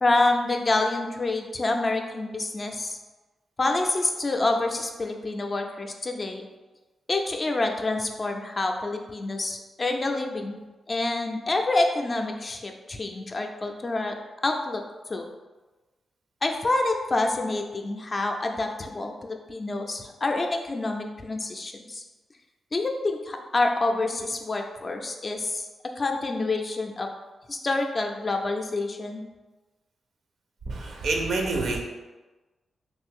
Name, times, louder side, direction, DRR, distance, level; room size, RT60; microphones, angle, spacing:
voice 1, 0.0-3.0 3.6-6.4 7.1-10.6 10.9-14.2 14.4-14.8 15.1-15.2 16.4-22.0 22.7-25.7 26.0-27.1 27.5-29.2, left 2 dB, 30° left, 3 dB, 0.4 m, -27 dB
voice 2, 30.7-31.8, right 3 dB, 75° right, 1 dB, 0.6 m, -27 dB
3.1 x 2.6 x 3.5 m, 1.2 s
cardioid pair, 105°, 0 cm